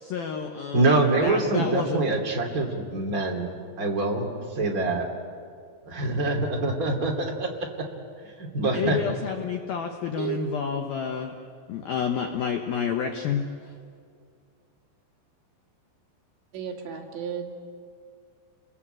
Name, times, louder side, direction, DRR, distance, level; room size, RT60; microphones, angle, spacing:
voice 1, 0.0-2.2 8.7-11.3 11.7-13.4, left 7 dB, 70° left, 4 dB, 2.3 m, -29 dB
voice 2, 0.7-3.5 3.8-5.0 5.9-7.5 8.4-9.0, right 2 dB, 25° right, 1 dB, 2.1 m, -25 dB
voice 3, 16.5-17.5, right 8 dB, 60° right, 1 dB, 4.6 m, -33 dB
30.0 x 22.0 x 9.0 m, 2.3 s
omnidirectional pair, 6.0 m